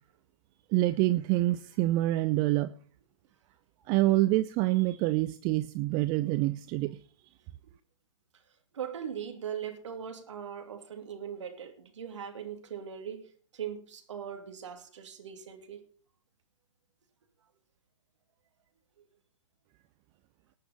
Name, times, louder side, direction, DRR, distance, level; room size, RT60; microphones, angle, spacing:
voice 1, 0.7-2.7 3.9-7.0, right 17 dB, 25° right, 0.5 m, -26 dB
voice 2, 8.7-15.8, right 8 dB, 60° right, 2.8 m, -40 dB
19.0 x 6.6 x 5.5 m
figure-of-eight pair, 120°, 17 cm